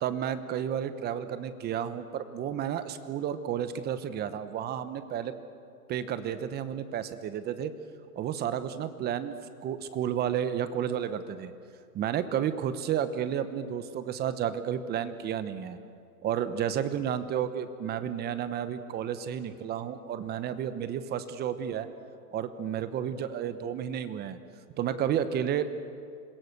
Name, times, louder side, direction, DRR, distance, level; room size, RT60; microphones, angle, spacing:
voice 1, 0.0-5.3 5.9-7.7 8.2-9.4 9.6-11.5 11.9-15.8 16.2-21.9 22.3-24.4 24.8-25.8, right 9 dB, 20° right, 12 dB, 1.0 m, -31 dB
26.5 x 21.0 x 6.7 m, 2.4 s
hypercardioid pair, 145°, 46 cm